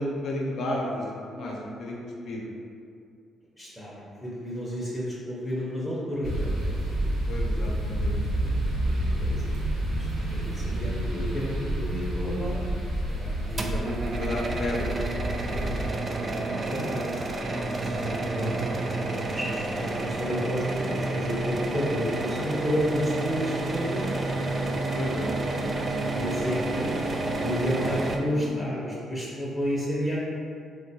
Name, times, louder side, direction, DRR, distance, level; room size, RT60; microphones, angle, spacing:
voice 1, 0.0-2.5 7.3-8.8 13.7-15.1 15.5-15.9 18.1-18.3 24.9-25.8 28.4-28.6, left 1 dB, 65° left, -2 dB, 0.6 m, -34 dB
voice 2, 3.6-3.9 4.2-7.1 8.8-9.4 9.8-12.6 13.0-14.2 15.5-17.3 17.5-24.2 26.0-30.3, equal, 15° left, -7 dB, 0.7 m, -31 dB
sound 1, 6.2-15.9, right 1 dB, 85° right, 0.9 m, -29 dB
sound 2, 13.6-28.2, right 2 dB, 40° right, 0.3 m, -30 dB
3.5 x 2.2 x 2.7 m, 2.4 s
cardioid pair, 90°, 0 cm